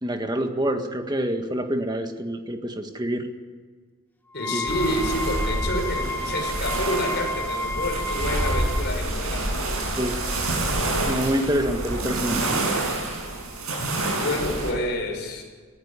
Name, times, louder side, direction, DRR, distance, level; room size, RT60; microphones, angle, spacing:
voice 1, 0.0-3.3 4.5-4.6 10.0-10.2 11.1-12.5, equal, 20° right, 6 dB, 1.7 m, -26 dB
voice 2, 4.3-9.5 14.0-15.4, left 1 dB, 50° left, 1 dB, 6.5 m, -28 dB
Wind instrument woodwind instrument, 4.3-8.8, left 1 dB, 10° left, 1.2 m, -31 dB
sound 1, 4.7-14.7, right 2 dB, 80° right, 7.3 m, -27 dB
20.0 x 15.0 x 9.8 m, 1.5 s
head